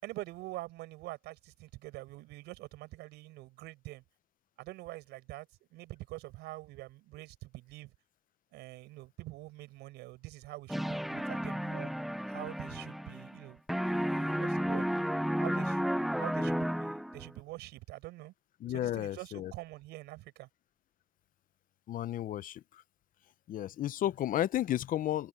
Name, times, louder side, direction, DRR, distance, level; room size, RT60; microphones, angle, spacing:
voice 1, 0.0-4.0 4.6-5.5 5.7-7.9 8.5-11.9 12.3-14.9 15.4-18.3 18.7-20.5, right 19 dB, 90° right, 7.4 m, -45 dB
sound 1, 10.7-13.4 13.7-17.3, equal, ahead, 0.4 m, -33 dB
voice 2, 18.6-19.5 21.9-22.8 23.5-25.3, left 12 dB, 55° left, 0.6 m, -33 dB
open air
cardioid pair, 110°, 17 cm